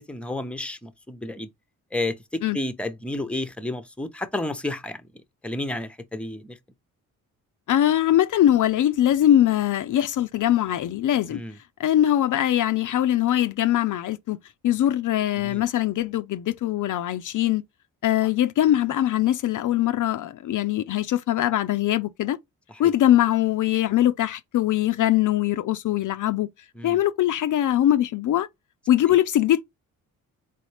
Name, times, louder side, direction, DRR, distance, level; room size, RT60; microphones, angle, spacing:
voice 1, 0.1-1.5 1.9-5.0 5.4-6.6 11.3-11.5 15.3-15.6 22.7-22.9 26.8-27.0, left 1 dB, 5° left, 0.7 m, -31 dB
voice 2, 7.7-11.4 11.8-14.4 14.6-17.6 18.0-22.4 22.8-26.5 26.8-28.5 28.9-29.6, left 12 dB, 60° left, 0.5 m, -22 dB
4.1 x 3.9 x 3.3 m
cardioid pair, 75°, 35 cm